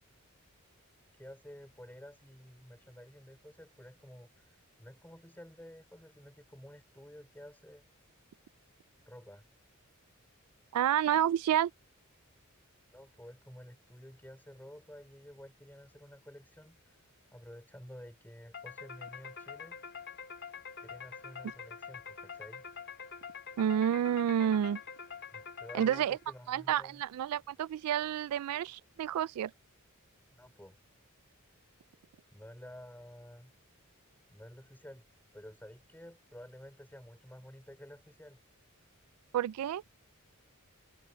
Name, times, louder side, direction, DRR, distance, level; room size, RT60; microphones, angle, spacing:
voice 1, 1.1-4.5 4.8-7.9 9.1-9.5 12.9-17.0 17.3-19.8 20.8-22.6 25.3-27.0 30.3-30.8 32.3-33.5 34.3-35.1 35.3-38.4, equal, 10° left, 4.5 m, -51 dB
voice 2, 10.7-11.7 23.6-24.8 25.7-26.2 26.5-29.5 39.3-39.8, right 10 dB, 85° right, 0.3 m, -29 dB
sound 1, 18.5-26.4, left 6 dB, 55° left, 4.0 m, -46 dB
head